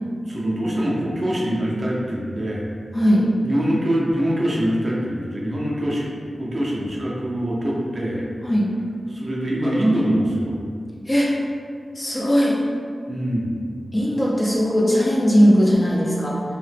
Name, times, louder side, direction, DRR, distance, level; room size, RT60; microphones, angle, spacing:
voice 1, 0.3-2.6 3.4-6.1 6.4-8.3 9.1-10.5 13.1-13.6, equal, 35° right, -4 dB, 0.5 m, -23 dB
voice 2, 2.9-3.3 8.4-8.7 11.1-11.3 11.9-12.6 13.9-16.4, equal, 20° left, -4 dB, 0.4 m, -18 dB
2.7 x 2.1 x 3.3 m, 2.2 s
wide cardioid pair, 110°, 0 cm